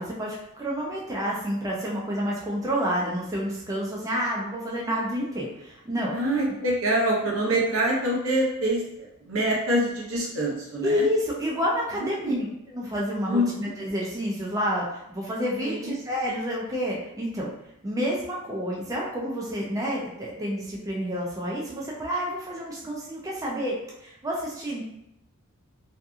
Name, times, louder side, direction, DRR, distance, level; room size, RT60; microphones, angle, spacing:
voice 1, 0.0-6.2 6.5-6.6 10.8-17.5 17.8-23.8 24.0-24.8, equal, 15° right, -4 dB, 0.4 m, -29 dB
voice 2, 6.1-11.0 12.0-12.3 13.3-13.7 15.6-15.9, right 1 dB, 70° right, -3 dB, 0.8 m, -25 dB
2.7 x 2.5 x 2.4 m, 0.79 s
head